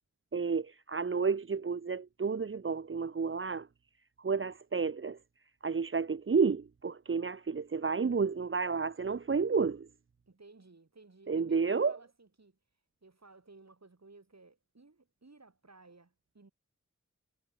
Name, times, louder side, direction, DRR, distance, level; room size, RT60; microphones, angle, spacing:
voice 1, 0.3-3.7 4.2-5.2 5.6-9.9 11.3-12.0, right 5 dB, 45° right, 0.7 m, -31 dB
voice 2, 10.3-12.6 13.0-16.5, right 3 dB, 60° right, 5.7 m, -57 dB
wide cardioid pair, 45°, 30 cm